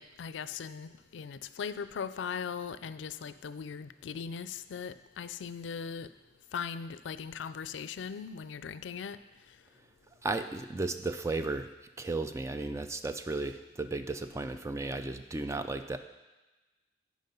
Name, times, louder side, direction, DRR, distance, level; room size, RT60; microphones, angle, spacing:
voice 1, 0.0-6.1 6.5-9.2, left 6 dB, 85° left, 13 dB, 0.4 m, -39 dB
voice 2, 10.2-11.7 12.0-16.0, right 2 dB, 15° right, 9 dB, 0.3 m, -34 dB
9.3 x 4.9 x 5.3 m, 1.1 s
head